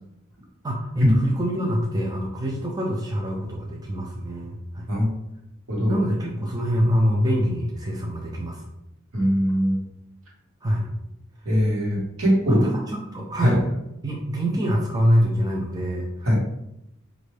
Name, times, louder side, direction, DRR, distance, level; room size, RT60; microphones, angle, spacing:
voice 1, 0.6-4.9 5.9-8.7 10.6-10.9 12.5-13.6 14.0-16.1, equal, 20° right, -1 dB, 0.4 m, -25 dB
voice 2, 9.1-9.8 11.4-12.7 13.4-13.6 16.2-16.4, equal, 75° right, -3 dB, 1.3 m, -20 dB
4.4 x 2.6 x 3.2 m, 0.85 s
head